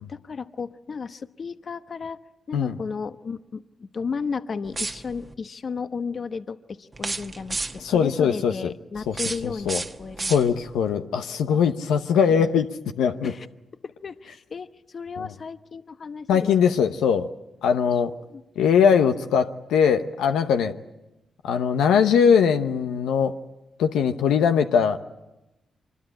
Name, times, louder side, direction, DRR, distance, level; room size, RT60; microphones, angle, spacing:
voice 1, 0.0-2.2 2.5-9.7 10.0-10.5 11.5-11.6 12.3-12.5 13.2-13.5 13.8-16.5 18.3-18.4 20.6-20.7, left 5 dB, 55° left, 10 dB, 1.0 m, -34 dB
sound 1, 4.7-5.3 6.9-8.0 8.9-10.8, right 3 dB, 30° right, 1.3 m, -33 dB
voice 2, 7.8-8.7 9.1-9.2 9.4-9.8 10.3-12.7 13.0-13.3 15.2-15.3 16.3-17.3 17.6-18.1 18.6-20.7 21.4-23.4 23.8-25.0, left 7 dB, 90° left, 7 dB, 0.9 m, -21 dB
25.0 x 21.0 x 8.8 m, 0.97 s
supercardioid pair, 60°, 0 cm